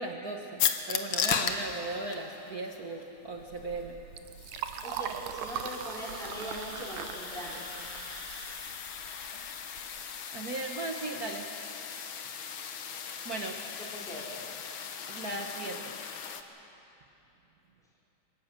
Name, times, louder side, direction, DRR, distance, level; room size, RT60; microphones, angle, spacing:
voice 1, 0.0-4.0 10.3-11.5 13.2-13.6 15.1-16.0, right 2 dB, 55° right, 2 dB, 1.0 m, -37 dB
sound 1, 0.6-16.4, left 7 dB, 60° left, 1.3 m, -37 dB
Liquid, 3.3-10.0, right 9 dB, 80° right, 2.3 m, -41 dB
voice 2, 4.8-7.6 13.8-14.4, equal, ahead, -6 dB, 4.3 m, -41 dB
25.0 x 19.0 x 7.5 m, 2.9 s
omnidirectional pair, 3.4 m